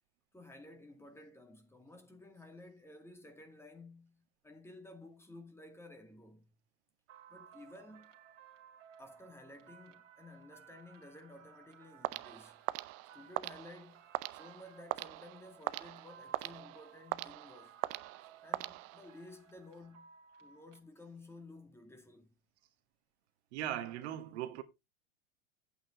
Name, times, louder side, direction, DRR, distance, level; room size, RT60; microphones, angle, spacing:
voice 1, 0.3-6.5 7.3-8.1 9.0-12.6 13.1-17.8 18.4-20.1 20.4-22.3, left 2 dB, 5° left, 2.2 m, -54 dB
sound 1, 7.1-20.8, right 7 dB, 75° right, 2.6 m, -59 dB
sound 2, 12.0-19.3, right 20 dB, 35° right, 0.6 m, -41 dB
voice 2, 23.5-24.6, right 12 dB, 60° right, 1.9 m, -39 dB
9.7 x 8.6 x 4.1 m
hypercardioid pair, 110°, 38 cm